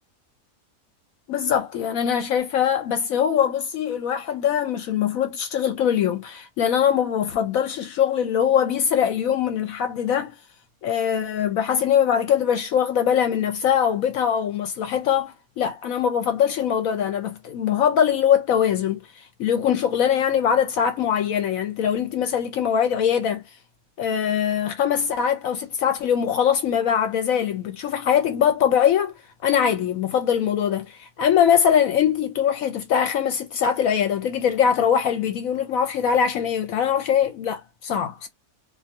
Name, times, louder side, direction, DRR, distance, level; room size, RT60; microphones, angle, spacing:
voice 1, 1.3-10.3 10.8-23.4 24.0-29.1 29.4-38.3, left 8 dB, 75° left, 1.0 m, -22 dB
2.5 x 2.2 x 2.8 m
omnidirectional pair, 1.6 m